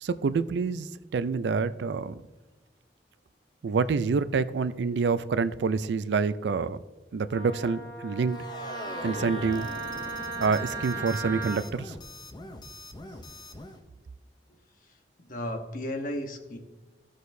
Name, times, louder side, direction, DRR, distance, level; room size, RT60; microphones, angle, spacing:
voice 1, 0.0-2.2 3.6-6.8 7.1-8.4 9.0-9.7 10.4-11.9, right 4 dB, 80° right, 0.4 m, -27 dB
Wind instrument woodwind instrument, 7.3-11.6, right 3 dB, 35° right, 1.9 m, -36 dB
sound 1, 8.3-13.8, left 1 dB, 25° left, 0.6 m, -42 dB
voice 2, 15.2-16.6, left 1 dB, 50° left, 1.0 m, -34 dB
14.5 x 6.4 x 2.7 m
head